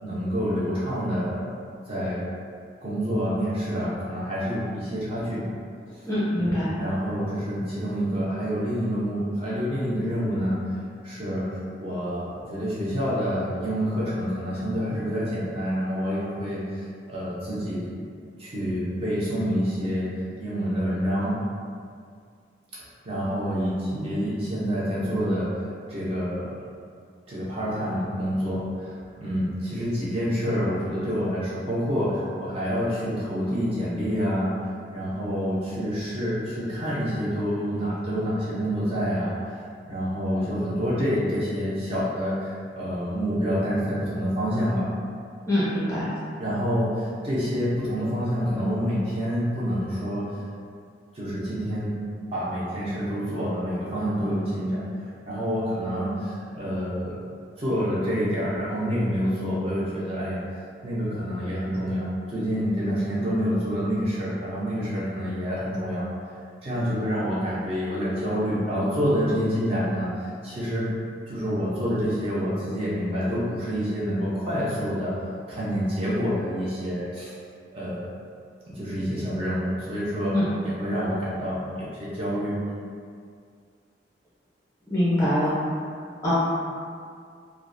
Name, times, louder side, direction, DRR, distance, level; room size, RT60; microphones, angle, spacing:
voice 1, 0.0-1.4 1.9-2.3 2.8-5.4 5.9-6.0 6.4-10.6 11.0-17.9 18.4-21.4 23.0-25.5 25.9-26.5 27.3-34.5 34.9-44.9 46.4-50.3 51.1-52.0 52.3-54.8 55.3-57.1 57.6-60.4 60.8-66.1 66.6-70.9 71.3-75.2 75.5-77.3 77.7-78.1 78.7-80.4 80.6-82.6, equal, 30° right, -9 dB, 0.5 m, -27 dB
voice 2, 6.1-6.7 45.5-46.1 80.3-80.5 84.9-85.5 86.2-86.3, left 1 dB, 15° left, -10 dB, 0.6 m, -23 dB
2.4 x 2.0 x 2.5 m, 2.2 s
head